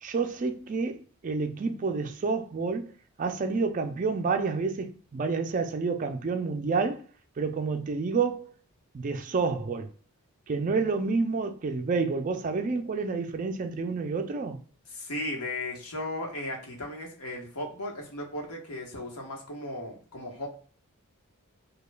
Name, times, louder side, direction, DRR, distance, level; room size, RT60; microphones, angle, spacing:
voice 1, 0.0-2.9 3.2-7.0 7.4-8.5 8.9-9.9 10.5-14.6, right 4 dB, 35° right, 0.3 m, -29 dB
voice 2, 14.9-20.5, left 1 dB, 85° left, 1.0 m, -36 dB
5.1 x 2.3 x 2.2 m
head